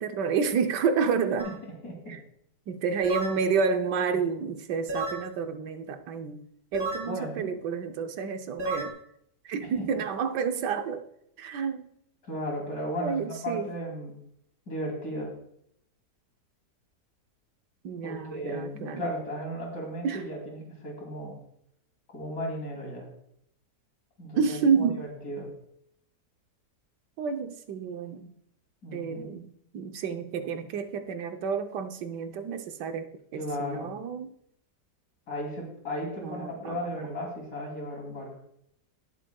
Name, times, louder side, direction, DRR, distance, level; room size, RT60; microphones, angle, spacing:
voice 1, 0.0-1.5 2.1-2.2 2.7-6.4 6.7-8.9 9.4-11.1 11.4-11.9 13.0-13.7 17.8-19.1 20.0-20.2 24.4-25.1 27.2-28.3 28.9-34.3 36.2-36.8, right 6 dB, 80° right, 8 dB, 1.4 m, -29 dB
sound 1, 1.4-1.6 3.0-3.4 4.9-5.3 6.7-7.1 8.6-8.9, right 2 dB, 35° right, 3.8 m, -32 dB
voice 2, 1.5-2.2 7.0-7.5 9.6-9.9 12.2-14.1 14.7-15.3 18.0-21.4 22.1-23.1 24.2-25.5 28.8-29.4 33.3-33.9 35.3-38.3, equal, 60° left, -1 dB, 3.5 m, -35 dB
18.5 x 7.4 x 2.3 m, 0.73 s
omnidirectional pair, 1.8 m